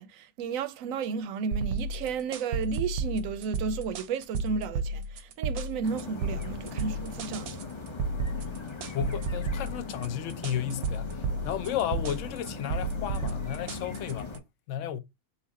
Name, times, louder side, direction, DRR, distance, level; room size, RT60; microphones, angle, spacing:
voice 1, 0.0-7.7, right 6 dB, 75° right, 0.9 m, -33 dB
sound 1, 1.5-14.4, right 3 dB, 90° right, 1.1 m, -33 dB
sound 2, 5.8-14.4, left 4 dB, 25° left, 0.6 m, -39 dB
voice 2, 8.9-14.3 14.7-15.0, left 10 dB, 70° left, 0.8 m, -33 dB
4.2 x 2.4 x 4.0 m
omnidirectional pair, 1.5 m